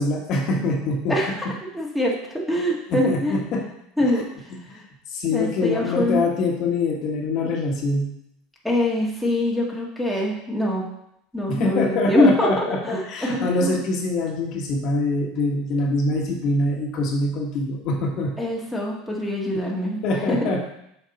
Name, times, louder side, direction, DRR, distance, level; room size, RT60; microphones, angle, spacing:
voice 1, 0.0-1.2 2.9-3.6 4.1-4.2 4.5-8.1 11.5-18.3 19.5-19.6 20.0-20.6, left 2 dB, 50° left, 0 dB, 1.3 m, -24 dB
voice 2, 1.1-1.5 1.7-3.4 4.0-4.3 5.3-6.2 8.6-10.8 11.3-13.8 18.4-20.0 20.3-20.5, left 1 dB, ahead, -4 dB, 1.5 m, -24 dB
6.5 x 4.6 x 4.0 m, 0.77 s
supercardioid pair, 120°, 0 cm